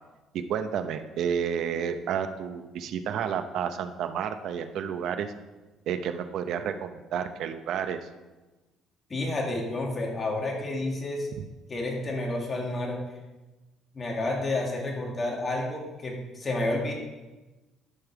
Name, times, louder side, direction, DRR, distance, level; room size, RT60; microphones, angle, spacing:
voice 1, 0.3-5.3 5.9-8.0 11.4-11.5, right 8 dB, 65° right, 9 dB, 0.7 m, -31 dB
voice 2, 9.1-11.3 11.7-13.0 13.9-16.9, left 2 dB, 25° left, -1 dB, 2.0 m, -30 dB
12.0 x 5.4 x 4.7 m, 1.2 s
cardioid pair, 130°, 0 cm